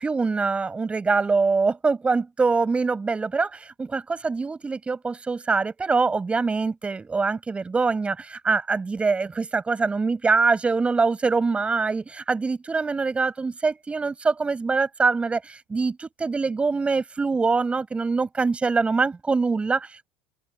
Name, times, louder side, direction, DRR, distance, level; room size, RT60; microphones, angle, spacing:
voice 1, 0.0-20.1, right 4 dB, 20° right, 6.6 m, -24 dB
open air
supercardioid pair, 110°, 6 cm